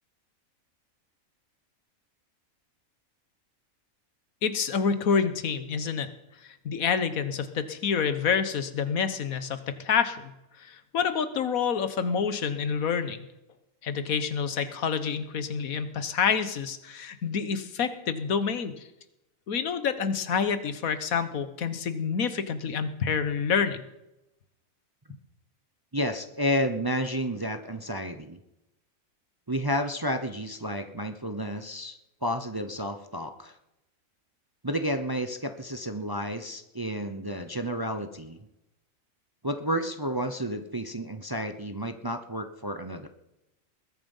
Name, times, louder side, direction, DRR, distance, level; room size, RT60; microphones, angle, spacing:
voice 1, 4.4-6.1 6.6-10.3 10.6-13.2 13.8-18.9 19.5-23.8, left 6 dB, 85° left, 11 dB, 1.5 m, -28 dB
voice 2, 25.9-28.4 29.5-33.6 34.6-38.4 39.4-43.1, equal, 20° right, 8 dB, 0.6 m, -31 dB
21.0 x 9.0 x 5.5 m, 0.91 s
omnidirectional pair, 1.4 m